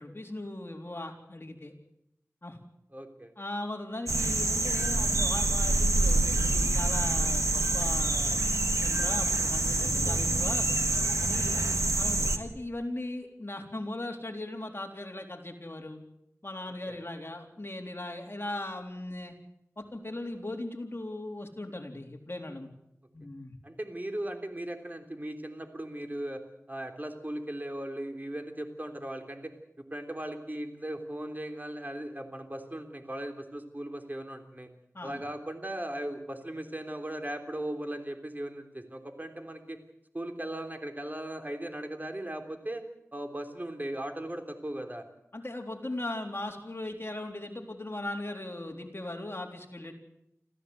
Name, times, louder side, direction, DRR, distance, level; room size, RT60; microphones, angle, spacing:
voice 1, 0.0-1.7 2.4-2.6 3.4-8.5 8.8-10.7 11.2-16.0 16.4-19.3 19.8-22.7 23.1-23.5 34.9-35.2 45.3-49.9, left 1 dB, 45° left, 1 dB, 3.9 m, -38 dB
voice 2, 2.9-3.3 11.4-11.8 16.9-17.0 23.6-26.4 26.7-29.5 29.9-34.7 35.0-39.8 40.1-42.8 43.1-45.0, right 1 dB, 35° right, 5 dB, 3.4 m, -38 dB
sound 1, 4.1-12.4, right 2 dB, 70° right, 2.1 m, -26 dB
26.0 x 15.0 x 8.1 m, 0.81 s
wide cardioid pair, 45°, 5 cm